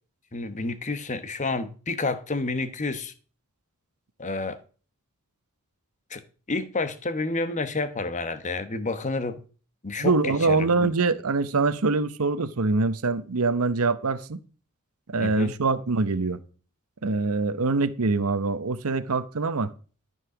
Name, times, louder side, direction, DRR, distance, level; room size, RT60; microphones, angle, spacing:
voice 1, 0.3-3.1 4.2-4.6 6.1-6.2 6.5-9.4 9.8-10.9 15.2-15.5, left 3 dB, 35° left, 1.1 m, -29 dB
voice 2, 10.0-14.4 15.1-16.4 17.0-19.7, right 3 dB, 80° right, 0.8 m, -24 dB
13.0 x 5.5 x 6.0 m
head